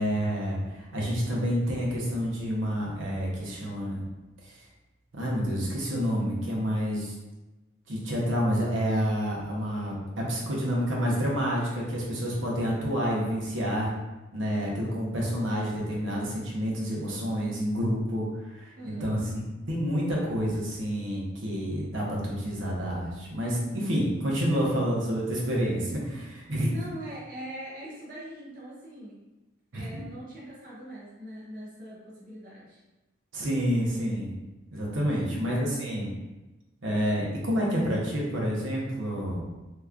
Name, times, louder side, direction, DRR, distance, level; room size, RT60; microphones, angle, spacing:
voice 1, 0.0-4.0 4.4-4.6 5.1-7.1 7.9-13.9 14.3-18.3 18.5-26.7 29.7-30.0 33.3-34.3 34.7-36.1 36.8-39.4, equal, 75° right, -4 dB, 0.8 m, -28 dB
voice 2, 18.7-19.3 26.7-29.2 29.7-32.8 35.1-35.5, right 1 dB, 45° right, -6 dB, 0.7 m, -42 dB
3.5 x 2.9 x 2.4 m, 1.1 s
head